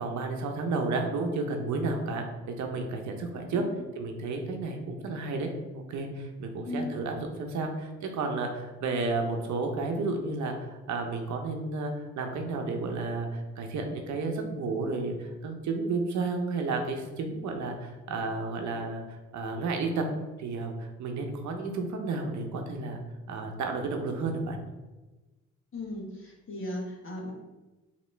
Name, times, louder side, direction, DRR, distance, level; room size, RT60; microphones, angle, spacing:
voice 1, 0.0-2.3 2.6-3.7 4.0-20.1 20.4-23.0 23.3-24.6, right 3 dB, 70° right, 3 dB, 0.8 m, -32 dB
voice 2, 6.6-7.0 25.7-27.3, left 2 dB, 40° left, -2 dB, 1.3 m, -37 dB
3.9 x 2.9 x 3.3 m, 1.1 s
cardioid pair, 90°, 30 cm